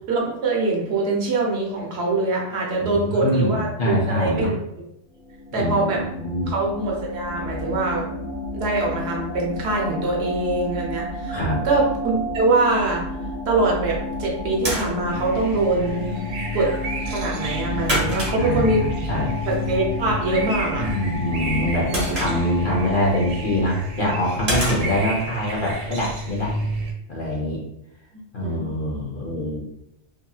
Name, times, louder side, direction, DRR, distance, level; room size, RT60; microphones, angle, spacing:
voice 1, 0.1-4.5 5.5-6.0 6.5-8.1 8.5-13.1 13.5-16.2 16.5-16.7 17.1-18.8 19.5-20.9 28.1-28.6, right 2 dB, 65° right, -1 dB, 0.9 m, -23 dB
voice 2, 2.8-4.5 5.6-6.5 11.3-11.6 18.4-19.3 20.8-21.9 22.1-26.5 27.1-27.6 28.3-29.6, equal, 50° left, -3 dB, 0.8 m, -24 dB
sound 1, 5.2-24.1, left 1 dB, 70° left, 1.0 m, -31 dB
sound 2, 13.8-26.9, right 1 dB, 35° right, 1.1 m, -32 dB
sound 3, 15.1-26.9, equal, 90° right, 1.0 m, -32 dB
2.9 x 2.6 x 2.3 m, 0.83 s
omnidirectional pair, 1.3 m